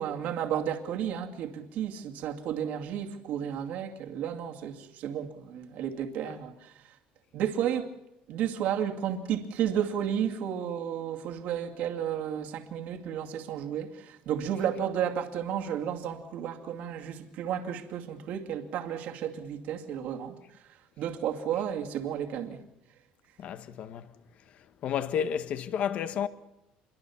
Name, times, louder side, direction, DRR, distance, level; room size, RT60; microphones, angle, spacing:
voice 1, 0.0-6.8 7.3-7.9 8.3-20.4 21.0-22.6, right 9 dB, 60° right, 2.3 m, -32 dB
voice 2, 23.4-24.1 24.8-26.3, left 8 dB, 45° left, 1.4 m, -31 dB
27.5 x 23.0 x 7.1 m
cardioid pair, 160°, 3 cm